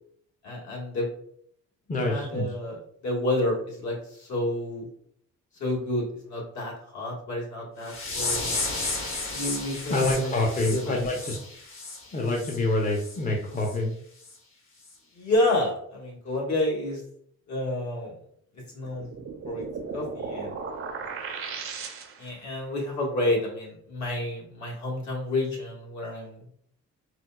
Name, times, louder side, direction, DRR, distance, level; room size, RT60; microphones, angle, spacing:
voice 1, 0.4-1.1 1.9-4.9 5.6-8.5 9.3-10.3 10.7-11.0 15.1-17.0 17.5-18.1 18.7-19.1 19.4-19.6 19.9-20.6 22.2-26.4, left 1 dB, 70° left, -4 dB, 1.5 m, -29 dB
voice 2, 1.9-2.5 9.9-11.4 12.1-13.9, left 2 dB, 25° left, 0 dB, 0.6 m, -26 dB
sound 1, 7.8-12.6 12.9-13.2 13.6-13.8 14.2-14.4 14.8-14.9, left 3 dB, 45° left, 1.0 m, -33 dB
sound 2, 18.8-22.4, right 5 dB, 45° right, 0.5 m, -36 dB
4.2 x 2.2 x 2.2 m, 0.67 s
cardioid pair, 90°, 30 cm